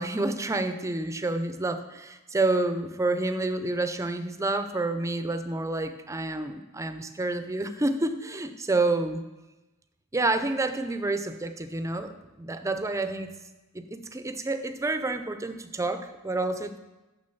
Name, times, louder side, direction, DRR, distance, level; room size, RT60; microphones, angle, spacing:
voice 1, 0.0-9.2 10.1-13.3 13.7-16.8, right 2 dB, 15° right, 9 dB, 0.5 m, -29 dB
6.4 x 6.4 x 6.9 m, 1.1 s
head